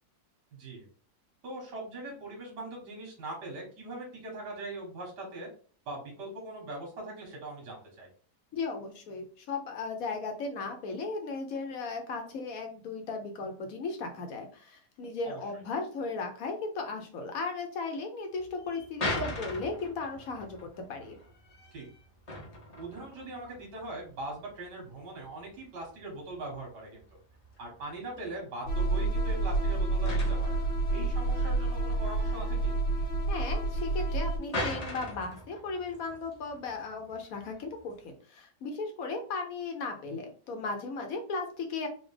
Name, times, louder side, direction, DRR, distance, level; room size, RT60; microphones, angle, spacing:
voice 1, 0.5-0.9 1.4-5.5 5.9-8.1 15.2-15.4 21.7-21.9 22.8-27.0 27.6-30.5 30.9-32.8, right 2 dB, 80° right, -1 dB, 1.9 m, -41 dB
voice 2, 8.5-21.2 33.3-41.9, left 4 dB, 60° left, 5 dB, 1.2 m, -36 dB
sound 1, 18.4-38.1, left 1 dB, 35° left, 0.6 m, -42 dB
sound 2, 28.7-34.4, right 2 dB, 80° left, 1.7 m, -29 dB
4.1 x 2.5 x 3.2 m, 0.43 s
omnidirectional pair, 1.8 m